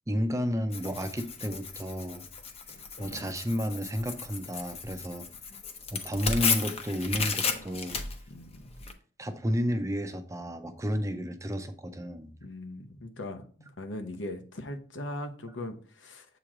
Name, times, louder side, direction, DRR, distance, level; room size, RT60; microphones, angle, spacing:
voice 1, 0.1-2.2 3.0-5.3 5.9-8.0 9.2-12.3, equal, 15° right, 8 dB, 0.5 m, -32 dB
Tearing, 0.7-8.9, left 5 dB, 35° left, 0.7 m, -34 dB
voice 2, 8.3-8.8 12.4-16.3, left 1 dB, 80° left, 5 dB, 0.9 m, -40 dB
7.5 x 3.0 x 4.9 m, 0.42 s
head